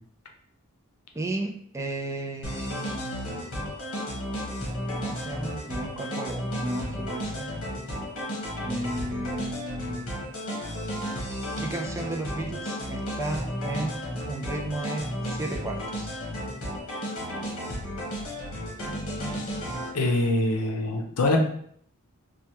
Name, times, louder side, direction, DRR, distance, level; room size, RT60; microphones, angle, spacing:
voice 1, 1.1-3.3 5.0-7.5 8.6-10.1 11.6-14.0 14.3-16.2, right 2 dB, 15° right, 1 dB, 0.3 m, -34 dB
sound 1, 2.4-19.9, equal, 65° left, 1.1 m, -33 dB
voice 2, 19.9-21.4, left 2 dB, 85° left, 2 dB, 0.6 m, -24 dB
3.2 x 2.2 x 2.8 m, 0.64 s
head